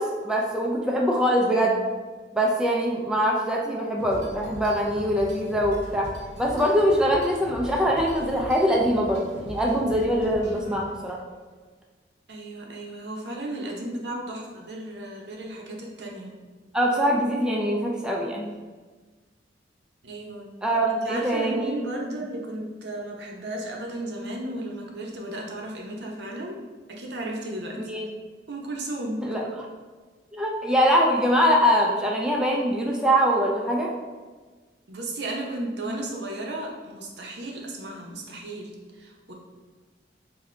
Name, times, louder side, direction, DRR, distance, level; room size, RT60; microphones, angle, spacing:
voice 1, 0.0-1.8 2.3-6.1 6.4-11.2 16.7-18.5 20.6-21.7 27.8-28.1 29.2-29.5 30.3-33.9, equal, 5° right, -2 dB, 0.4 m, -23 dB
sound 1, 4.0-11.2, equal, 90° right, 0.9 m, -41 dB
voice 2, 12.3-16.3 20.0-20.6 20.9-26.6 26.9-27.8 28.5-29.2 34.9-39.3, right 1 dB, 65° right, -1 dB, 0.7 m, -34 dB
3.7 x 2.7 x 3.2 m, 1.4 s
head